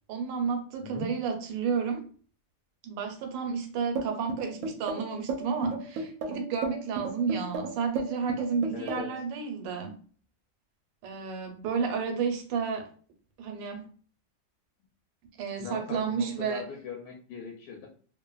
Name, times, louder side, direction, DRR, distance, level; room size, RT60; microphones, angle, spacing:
voice 1, 0.1-2.0 2.8-9.9 11.0-12.9 13.4-13.8 15.4-16.6, right 6 dB, 90° right, 4 dB, 1.3 m, -31 dB
voice 2, 0.8-1.1 8.7-9.1 15.6-17.9, left 6 dB, 80° left, -1 dB, 1.2 m, -40 dB
sound 1, 4.0-9.2, right 4 dB, 70° right, 0.8 m, -33 dB
3.1 x 2.0 x 2.3 m, 0.43 s
omnidirectional pair, 1.9 m